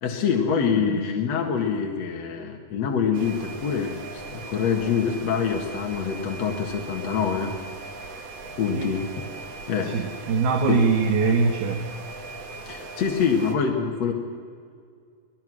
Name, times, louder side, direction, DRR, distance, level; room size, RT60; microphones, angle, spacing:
voice 1, 0.0-7.5 8.6-9.1 9.7-9.9 10.7-10.8 11.2-11.3 12.7-14.1, left 6 dB, 50° left, 1 dB, 2.5 m, -25 dB
sound 1, 3.1-13.6, right 3 dB, 45° right, 2.8 m, -39 dB
voice 2, 9.8-11.8, right 4 dB, 80° right, 3 dB, 3.5 m, -23 dB
26.5 x 19.5 x 6.3 m, 2.2 s
omnidirectional pair, 4.4 m